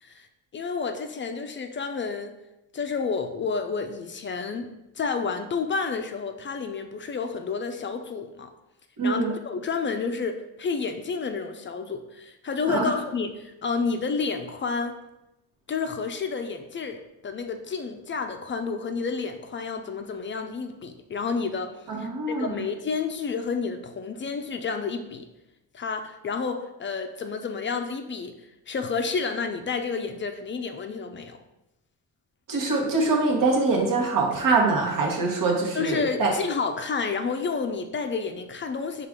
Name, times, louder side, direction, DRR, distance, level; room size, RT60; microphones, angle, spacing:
voice 1, 0.5-2.3 2.7-4.7 5.0-8.5 9.0-15.0 15.7-25.3 25.7-28.3 28.7-31.4 35.7-39.1, left 5 dB, 35° left, 6 dB, 0.4 m, -30 dB
voice 2, 9.0-9.3 12.7-12.9 21.9-22.6 32.5-36.3, right 3 dB, 60° right, 0 dB, 1.1 m, -24 dB
4.9 x 2.5 x 3.6 m, 0.94 s
cardioid pair, 90°, 37 cm